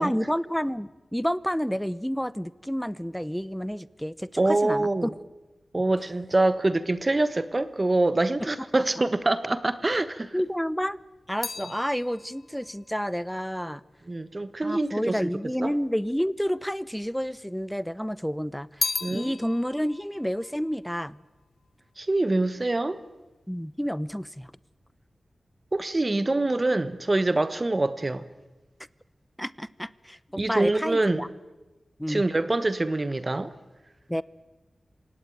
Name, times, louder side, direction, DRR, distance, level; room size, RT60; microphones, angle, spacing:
voice 1, 0.0-5.1 10.3-11.0 11.3-13.8 14.6-21.2 23.5-24.5 29.4-31.3 32.0-32.2 34.1-34.2, equal, 5° left, 0.7 m, -30 dB
voice 2, 4.4-5.1 5.7-10.3 14.1-15.2 15.6-15.7 19.0-19.3 22.0-23.0 25.7-28.2 30.3-31.2 32.1-33.5, right 2 dB, 30° right, 1.2 m, -25 dB
sound 1, 10.4-14.9 15.7-16.5 16.7-17.9 18.2-21.7 22.0-22.5, left 4 dB, 65° left, 1.0 m, -37 dB
27.0 x 17.5 x 9.3 m
wide cardioid pair, 85°, 0 cm